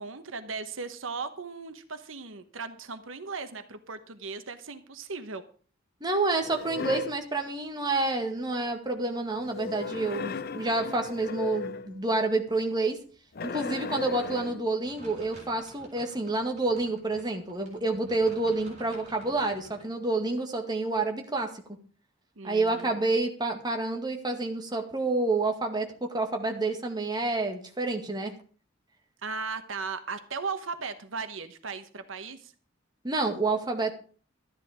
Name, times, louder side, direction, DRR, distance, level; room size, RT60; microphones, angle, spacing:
voice 1, 0.0-5.4 10.0-10.3 22.4-23.0 29.2-32.5, right 4 dB, 85° right, 10 dB, 1.1 m, -37 dB
voice 2, 6.0-13.0 13.4-21.5 22.4-25.9 26.1-28.3 33.0-33.9, right 2 dB, 20° right, 3 dB, 2.0 m, -28 dB
sound 1, 6.4-7.2 9.4-12.0 13.3-14.7, left 4 dB, 50° left, 0.6 m, -36 dB
sound 2, 14.8-19.8, right 1 dB, 35° right, 6.3 m, -51 dB
13.0 x 10.5 x 5.0 m, 0.41 s
head